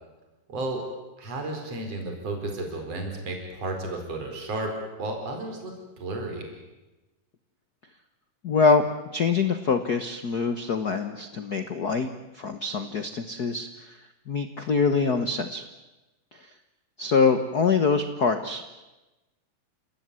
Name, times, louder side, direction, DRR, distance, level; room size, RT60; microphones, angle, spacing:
voice 1, 0.5-0.8 1.2-4.7 5.0-6.5, right 2 dB, 50° right, 3 dB, 5.6 m, -33 dB
voice 2, 8.4-8.8 9.1-12.1 12.3-14.0 14.3-15.7 16.3-16.5 17.0-18.7, left 5 dB, 80° left, 8 dB, 0.8 m, -24 dB
29.0 x 18.0 x 9.7 m, 1.1 s
omnidirectional pair, 3.8 m